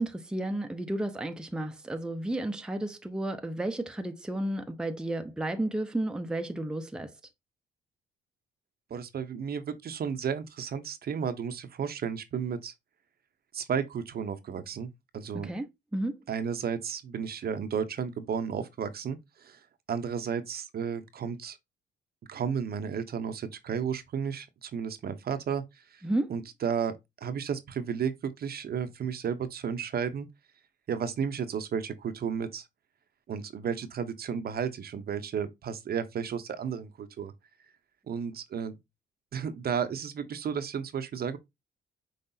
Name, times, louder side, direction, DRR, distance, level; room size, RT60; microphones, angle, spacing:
voice 1, 0.0-7.1 15.4-16.2 26.0-26.3, right 1 dB, 5° right, 0.6 m, -32 dB
voice 2, 8.9-12.7 13.5-15.5 16.3-21.6 22.3-26.0 26.3-26.9 27.2-30.3 30.9-32.7 33.3-37.3 38.1-38.8 39.3-41.4, right 7 dB, 50° right, 0.7 m, -33 dB
5.5 x 3.2 x 2.6 m
cardioid pair, 90°, 20 cm